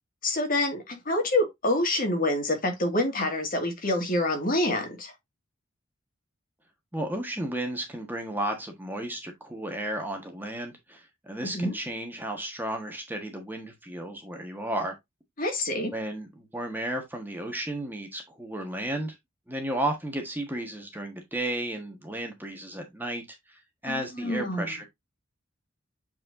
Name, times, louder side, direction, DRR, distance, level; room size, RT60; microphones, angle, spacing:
voice 1, 0.2-5.1 11.4-11.7 15.4-15.9 23.8-24.7, left 1 dB, 45° left, 2.1 m, -27 dB
voice 2, 6.9-14.9 15.9-19.1 19.5-23.2 23.5-24.8, right 1 dB, 10° right, 1.4 m, -33 dB
8.4 x 4.4 x 2.6 m
head